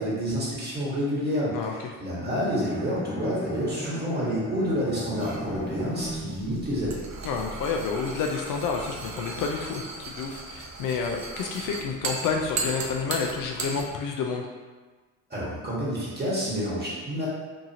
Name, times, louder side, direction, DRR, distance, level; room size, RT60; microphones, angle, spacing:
voice 1, 0.0-7.0 15.3-17.3, equal, 25° right, -8 dB, 1.4 m, -29 dB
Bowed string instrument, 2.2-6.5, equal, 15° left, 0.7 m, -37 dB
sound 1, 5.2-13.9, right 3 dB, 45° right, 0.6 m, -37 dB
voice 2, 7.2-14.5, left 5 dB, 60° left, 2 dB, 0.5 m, -29 dB
2.8 x 2.4 x 2.8 m, 1.4 s
hypercardioid pair, 55°, 38 cm